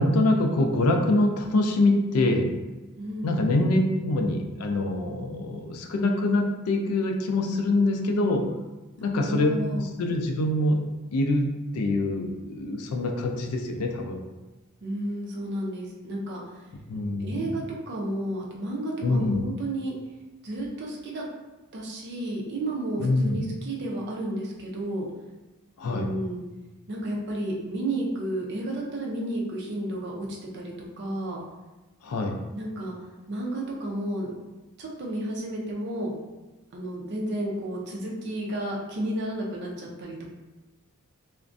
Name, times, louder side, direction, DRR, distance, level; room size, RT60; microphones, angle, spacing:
voice 1, 0.0-2.5 3.2-8.5 9.0-9.5 9.8-10.8 11.1-14.2 16.9-17.6 19.0-19.4 23.0-23.4 25.8-26.1 32.0-32.4, left 2 dB, 85° left, 3 dB, 0.4 m, -24 dB
voice 2, 3.0-3.4 9.0-9.8 14.8-16.4 17.2-19.9 20.4-21.2 21.7-25.1 25.9-26.4 26.9-30.3 30.5-31.4 32.5-32.9 33.3-34.3 34.8-36.1 36.7-40.3, right 1 dB, 50° right, -2 dB, 0.5 m, -32 dB
2.4 x 2.1 x 2.5 m, 1.1 s
head